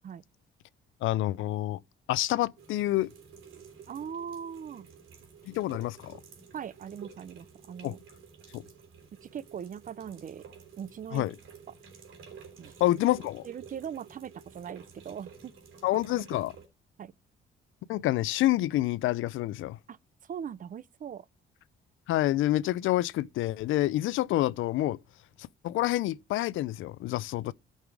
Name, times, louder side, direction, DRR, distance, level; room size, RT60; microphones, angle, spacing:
voice 1, 1.0-1.8 2.1-3.1 5.5-6.2 7.8-8.0 8.5-8.6 11.1-11.3 12.8-13.5 15.8-16.5 17.9-19.8 22.1-25.0 25.4-27.5, left 15 dB, 80° left, 0.5 m, -28 dB
sound 1, 2.6-16.7, right 6 dB, 80° right, 3.4 m, -51 dB
voice 2, 3.9-4.9 6.5-8.0 9.1-10.4 10.8-11.3 12.6-12.7 13.4-15.5 17.0-17.1 19.9-21.3, right 8 dB, 45° right, 0.5 m, -40 dB
14.0 x 5.6 x 4.7 m
cardioid pair, 90°, 20 cm